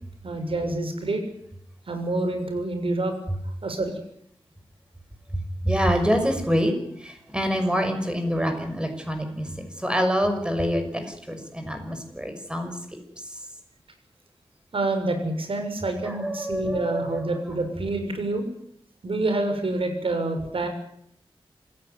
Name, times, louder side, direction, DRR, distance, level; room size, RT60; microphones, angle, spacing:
voice 1, 0.2-1.2 1.9-3.1 3.6-3.9 14.7-18.4 19.0-20.7, right 2 dB, 70° right, 6 dB, 6.8 m, -27 dB
voice 2, 5.6-6.7 7.0-12.7 16.0-17.5, equal, 10° right, 6 dB, 6.0 m, -26 dB
27.5 x 16.0 x 9.6 m, 0.71 s
wide cardioid pair, 105°, 10 cm